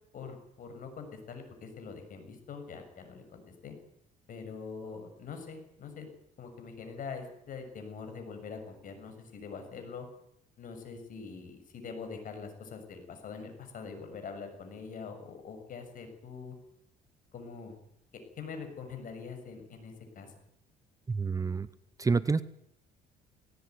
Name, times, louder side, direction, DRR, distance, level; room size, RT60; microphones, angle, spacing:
voice 1, 0.1-3.7 4.3-6.1 6.4-10.1 10.6-16.5 17.3-17.8 18.4-20.3, left 5 dB, 55° left, 6 dB, 7.0 m, -44 dB
voice 2, 21.1-21.7 22.0-22.4, right 4 dB, 20° right, 15 dB, 0.8 m, -28 dB
18.0 x 18.0 x 9.6 m, 0.75 s
cardioid pair, 110°, 17 cm